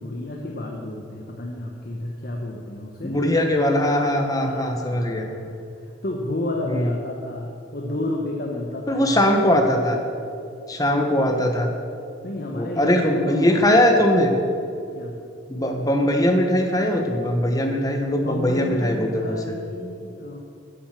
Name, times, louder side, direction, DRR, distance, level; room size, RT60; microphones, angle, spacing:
voice 1, 0.0-3.2 4.5-9.7 12.2-14.0 14.9-15.2 18.2-20.4, left 1 dB, 50° left, 0 dB, 0.9 m, -31 dB
voice 2, 3.0-5.2 6.7-6.9 8.9-10.0 10.7-11.7 12.5-14.3 15.5-19.4, left 1 dB, 20° left, 3 dB, 0.9 m, -20 dB
9.6 x 7.5 x 7.4 m, 2.6 s
head